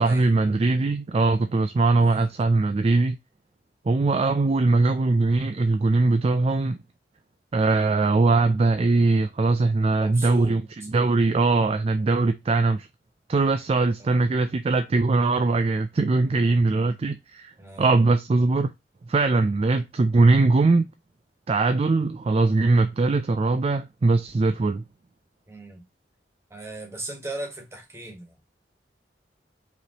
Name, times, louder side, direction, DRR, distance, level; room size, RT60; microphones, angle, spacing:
voice 1, 0.0-3.2 3.9-6.8 7.5-10.6 10.9-12.9 13.3-17.5 17.8-18.7 19.1-20.9 21.5-24.8, right 3 dB, 35° right, 0.3 m, -21 dB
voice 2, 2.0-2.3 10.0-10.9 14.0-14.3 16.2-16.5 17.6-17.9 25.5-25.8 26.5-28.3, right 2 dB, 15° right, 1.4 m, -38 dB
5.1 x 3.2 x 2.9 m
head